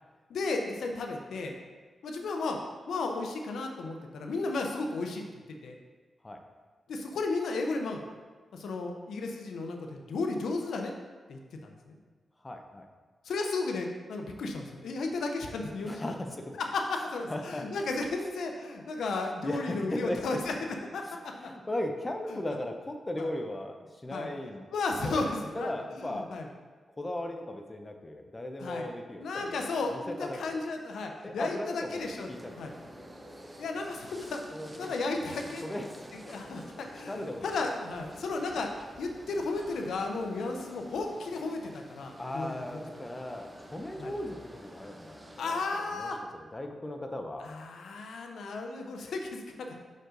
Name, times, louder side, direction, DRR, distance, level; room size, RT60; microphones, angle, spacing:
voice 1, 0.3-1.5 2.0-2.6 2.9-5.2 5.6-5.7 6.9-8.0 8.5-10.9 11.3-12.0 13.2-16.1 16.6-20.5 20.9-21.5 23.2-23.3 24.1-24.3 24.7-25.7 26.0-26.5 28.6-28.9 29.2-32.3 32.6-32.7 33.6-34.4 34.8-35.6 36.3-38.7 39.0-42.5 44.0-44.1 45.4-46.2 47.4-49.8, left 3 dB, 90° left, 3 dB, 0.7 m, -34 dB
voice 2, 12.4-12.9 15.8-16.6 17.3-17.6 19.4-20.4 21.0-24.7 25.0-26.3 27.0-30.6 31.2-32.9 34.5-34.9 35.6-36.1 37.1-37.6 38.5-38.6 42.2-47.5, left 1 dB, 20° left, 4 dB, 0.7 m, -37 dB
sound 1, 31.9-45.4, equal, 20° right, 0.8 m, -49 dB
6.3 x 5.3 x 3.9 m, 1.4 s
cardioid pair, 90°, 0 cm